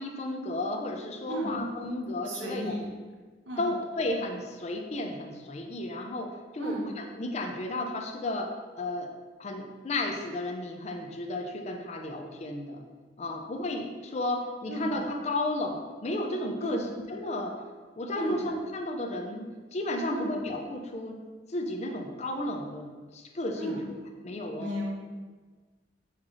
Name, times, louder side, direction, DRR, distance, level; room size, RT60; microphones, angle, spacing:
voice 1, 0.0-2.8 3.6-8.5 8.8-9.1 9.4-12.8 13.2-17.6 18.0-19.5 19.7-21.2 21.5-24.0 24.2-24.8, left 1 dB, 35° left, 3 dB, 0.4 m, -33 dB
voice 2, 2.3-2.9 3.5-3.6 6.6-6.8 14.7-15.0 16.6-16.8 18.1-18.4 20.1-20.3 23.6-23.9 24.5-24.9, right 1 dB, 85° right, -3 dB, 1.0 m, -34 dB
5.6 x 2.4 x 3.0 m, 1.4 s
head